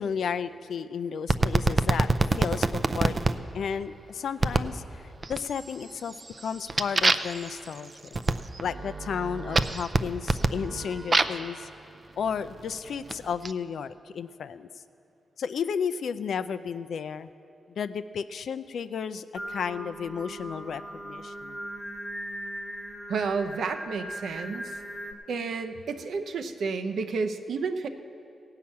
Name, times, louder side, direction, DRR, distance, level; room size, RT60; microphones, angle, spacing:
voice 1, 0.0-8.2 8.6-11.7 12.2-14.7 15.4-17.3 17.7-21.6, left 7 dB, 75° left, 12 dB, 0.4 m, -33 dB
sound 1, 1.3-3.3 4.4-4.8 5.2-5.7 6.1-11.5 12.3-13.5, right 3 dB, 35° right, 0.4 m, -26 dB
Singing, 19.4-25.1, right 1 dB, 10° right, 1.1 m, -39 dB
voice 2, 23.1-24.8 25.3-27.9, right 4 dB, 75° right, 8 dB, 0.7 m, -31 dB
16.5 x 5.7 x 8.5 m, 2.6 s
cardioid pair, 100°, 0 cm